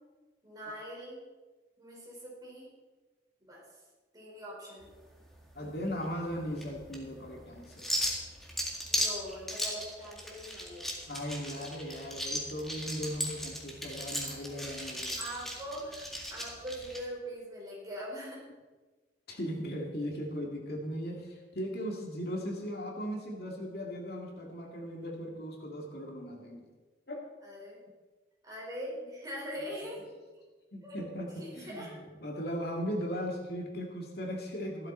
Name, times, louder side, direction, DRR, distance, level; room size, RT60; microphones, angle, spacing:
voice 1, 0.4-1.2 1.8-2.7 3.4-3.6 4.1-4.9 8.9-11.0 11.9-12.0 14.8-14.9 15.2-18.4 27.4-27.8 28.4-30.0 30.8-31.0 31.4-32.0, equal, 20° right, -5 dB, 5.1 m, -42 dB
sound 1, 4.8-17.0, equal, ahead, 2.0 m, -37 dB
voice 2, 5.6-7.9 11.1-15.2 19.3-26.7 27.1-27.2 29.1-29.2 30.7-34.9, equal, 60° left, 0 dB, 2.3 m, -38 dB
14.5 x 12.0 x 4.4 m, 1.3 s
head